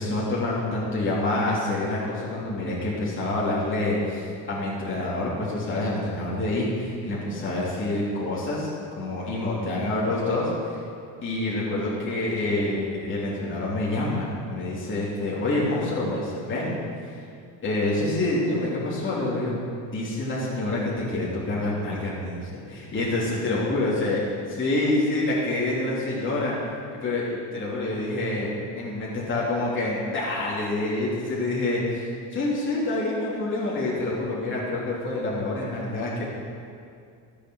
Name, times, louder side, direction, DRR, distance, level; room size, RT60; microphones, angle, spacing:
voice 1, 0.0-10.8 11.2-16.8 17.1-17.2 17.6-19.6 19.9-24.2 24.5-26.6 26.9-36.2, left 2 dB, 30° left, -7 dB, 3.2 m, -27 dB
13.5 x 8.5 x 6.5 m, 2.4 s
cardioid pair, 110°, 41 cm